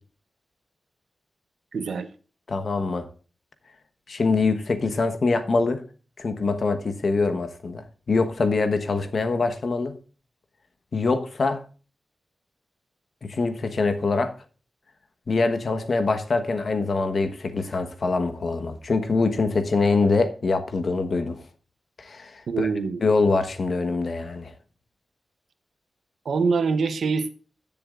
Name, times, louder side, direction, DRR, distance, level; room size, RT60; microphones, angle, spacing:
voice 1, 1.7-2.1 22.5-23.1 26.2-27.3, right 4 dB, 85° right, 0.9 m, -24 dB
voice 2, 2.5-3.1 4.1-5.8 6.2-9.9 10.9-11.6 13.2-14.3 15.3-21.4 22.0-22.7 23.0-24.5, left 3 dB, 55° left, 1.2 m, -24 dB
15.5 x 7.1 x 2.5 m
wide cardioid pair, 125°, 0 cm